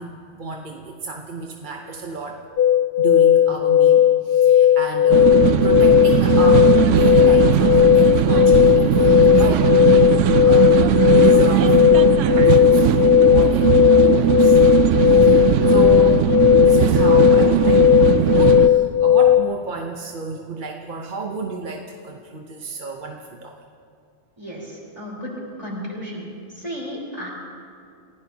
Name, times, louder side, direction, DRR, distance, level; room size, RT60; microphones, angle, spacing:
voice 1, 0.0-2.4 3.0-10.0 10.4-10.9 11.2-11.8 12.4-14.6 15.0-23.5, right 4 dB, 45° right, 1 dB, 1.0 m, -32 dB
sound 1, 2.6-19.4, left 11 dB, 60° left, 0.7 m, -15 dB
sound 2, 5.1-18.7, right 9 dB, 80° right, 0.9 m, -18 dB
voice 2, 24.4-26.3 26.5-27.3, equal, 25° right, -5 dB, 4.2 m, -33 dB
30.0 x 16.0 x 2.9 m, 2.4 s
omnidirectional pair, 1.3 m